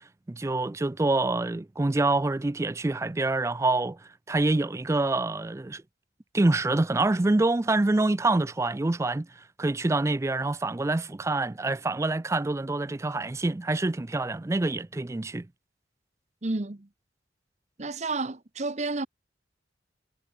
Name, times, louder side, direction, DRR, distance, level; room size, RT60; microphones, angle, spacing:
voice 1, 0.3-4.0 4.3-5.8 6.3-9.3 9.6-15.5, right 2 dB, 15° right, 0.4 m, -26 dB
voice 2, 16.4-16.9 17.8-19.1, right 3 dB, 40° right, 1.0 m, -31 dB
head